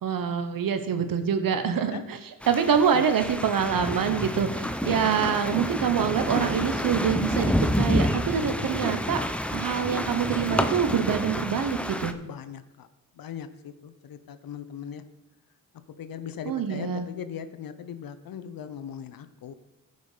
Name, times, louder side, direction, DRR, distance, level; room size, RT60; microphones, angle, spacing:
voice 1, 0.0-9.2 9.5-12.1 16.4-17.1, right 7 dB, 65° right, 9 dB, 1.2 m, -26 dB
voice 2, 1.5-2.0 2.9-3.1 12.1-12.9 13.2-15.0 16.0-19.6, left 8 dB, 70° left, 11 dB, 0.9 m, -39 dB
sound 1, 2.4-12.1, equal, 5° left, 0.7 m, -29 dB
14.5 x 5.5 x 5.0 m, 0.94 s
cardioid pair, 70°, 36 cm